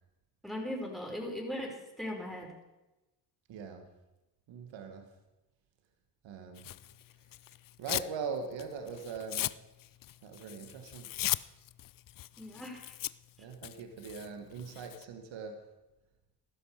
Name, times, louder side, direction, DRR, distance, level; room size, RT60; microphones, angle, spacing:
voice 1, 0.4-2.5 12.4-13.0, left 1 dB, ahead, -1 dB, 5.6 m, -39 dB
voice 2, 3.5-3.9 4.5-5.1 6.2-6.7 7.8-9.5 10.2-11.1 13.4-15.6, right 5 dB, 75° right, 6 dB, 1.8 m, -41 dB
Tearing, 6.6-8.2 8.5-15.0, left 13 dB, 45° left, 0.5 m, -38 dB
15.5 x 12.5 x 5.0 m, 0.99 s
supercardioid pair, 60°, 46 cm